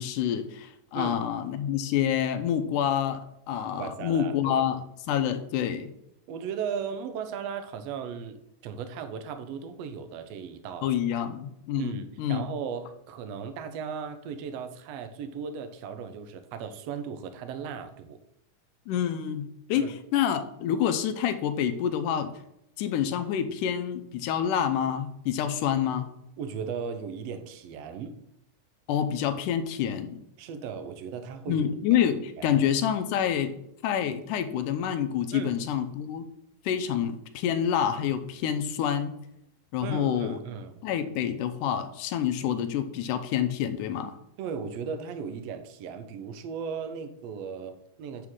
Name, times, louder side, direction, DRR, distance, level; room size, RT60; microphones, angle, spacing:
voice 1, 0.0-5.9 10.8-12.4 18.9-22.3 22.8-26.1 28.9-30.2 31.5-33.6 33.8-36.3 36.7-39.2 39.7-40.4 40.8-44.2, left 9 dB, 80° left, 9 dB, 2.2 m, -27 dB
voice 2, 3.7-4.7 6.3-11.2 11.7-18.2 19.7-19.9 26.4-28.2 30.4-31.7 32.4-32.6 35.3-35.5 39.8-40.8 44.4-48.3, right 6 dB, 75° right, 9 dB, 1.5 m, -36 dB
9.2 x 3.7 x 6.3 m, 0.78 s
omnidirectional pair, 3.7 m